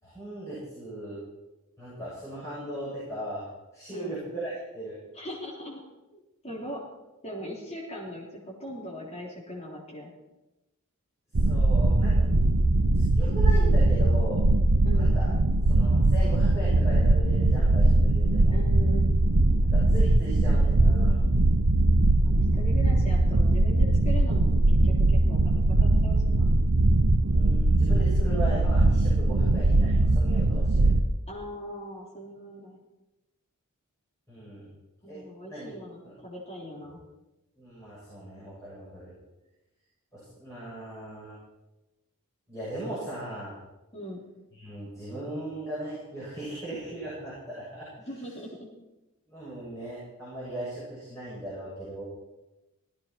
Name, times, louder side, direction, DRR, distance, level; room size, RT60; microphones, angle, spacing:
voice 1, 0.0-1.2 1.8-3.5 3.7-5.0 11.3-12.2 12.9-14.4 15.0-15.3 15.6-18.6 19.7-21.2 27.3-30.9 34.3-34.7 35.1-35.2 35.5-35.7 36.0-36.1 37.6-39.1 40.1-41.4 42.5-43.5 44.5-48.1 49.3-52.0, right 1 dB, 15° left, -10 dB, 7.4 m, -38 dB
voice 2, 5.1-5.8 6.1-6.8 7.2-10.1 14.8-15.1 18.5-19.2 22.3-26.5 29.4-29.6 31.3-32.8 35.0-37.0 43.9-44.2 48.1-48.7, equal, 30° left, -3 dB, 3.3 m, -40 dB
sound 1, 11.4-31.0, right 2 dB, 90° right, 0.9 m, -21 dB
18.0 x 15.0 x 4.6 m, 1.0 s
head